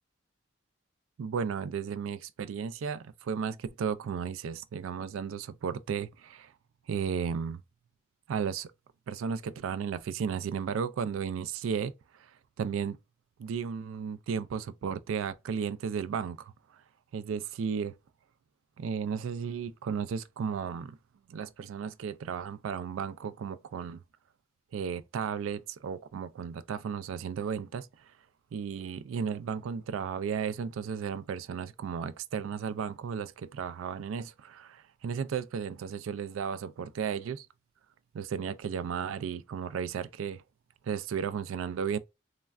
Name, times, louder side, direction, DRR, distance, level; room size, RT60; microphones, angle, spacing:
voice 1, 1.2-6.5 6.9-7.6 8.3-8.7 9.1-11.9 12.2-12.3 12.6-13.0 13.4-16.5 17.1-17.9 18.8-21.0 21.3-24.0 24.7-27.9 28.5-37.5 38.1-40.4 40.9-42.0, right 7 dB, 90° right, 0.3 m, -34 dB
3.1 x 2.2 x 2.4 m
head